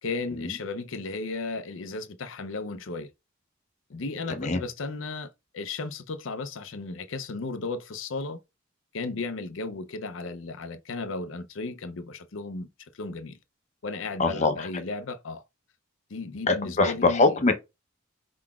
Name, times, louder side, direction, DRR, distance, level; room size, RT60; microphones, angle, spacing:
voice 1, 0.0-3.1 3.9-8.4 8.9-12.7 12.9-13.4 13.8-15.4 16.1-17.3, left 3 dB, 75° left, 0.6 m, -35 dB
voice 2, 14.2-14.8 16.5-17.5, left 3 dB, 35° left, 0.6 m, -23 dB
4.7 x 3.8 x 2.3 m
head